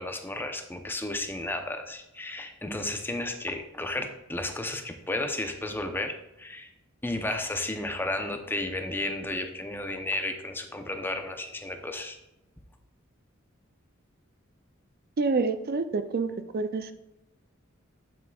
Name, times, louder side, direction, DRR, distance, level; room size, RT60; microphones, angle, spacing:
voice 1, 0.0-6.7 7.0-12.2, left 2 dB, 10° left, 5 dB, 0.7 m, -33 dB
voice 2, 15.2-16.9, right 4 dB, 50° right, 10 dB, 0.4 m, -28 dB
8.5 x 7.6 x 2.4 m, 0.91 s
head